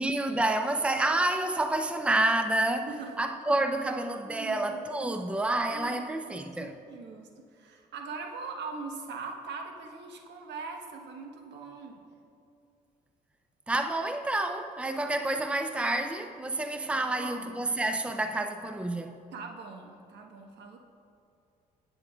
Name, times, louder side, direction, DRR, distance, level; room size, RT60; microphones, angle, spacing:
voice 1, 0.0-2.9 3.2-6.7 13.7-19.2, right 2 dB, 5° right, 0.6 m, -29 dB
voice 2, 4.2-4.8 5.7-12.0 16.9-17.6 19.3-20.8, right 4 dB, 65° right, 1.3 m, -42 dB
18.0 x 8.6 x 2.4 m
hypercardioid pair, 50°, 19 cm